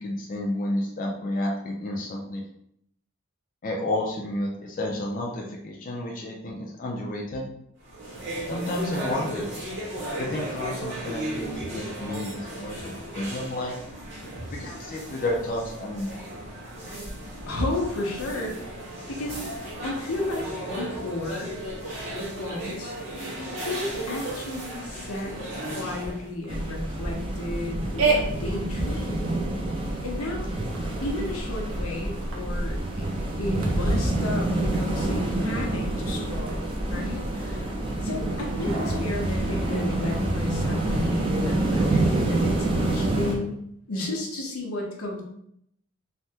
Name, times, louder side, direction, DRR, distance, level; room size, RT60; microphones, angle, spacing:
voice 1, 0.0-2.4 3.6-7.5 8.5-9.5 10.2-13.8 14.5-16.2, left 1 dB, 40° left, -2 dB, 0.4 m, -31 dB
sound 1, 7.8-26.3, right 1 dB, 55° right, 1.2 m, -35 dB
voice 2, 17.5-19.4 19.8-21.5 22.0-23.0 23.4-25.4 25.6-29.3 30.0-30.5 31.0-33.0 33.4-37.7 38.0-43.6 43.9-45.2, left 2 dB, 85° left, 0 dB, 0.8 m, -33 dB
sound 2, 23.9-43.4, right 2 dB, 90° right, 0.6 m, -35 dB
sound 3, 26.5-43.3, right 2 dB, 25° right, 0.5 m, -27 dB
3.3 x 2.1 x 2.7 m, 0.72 s
head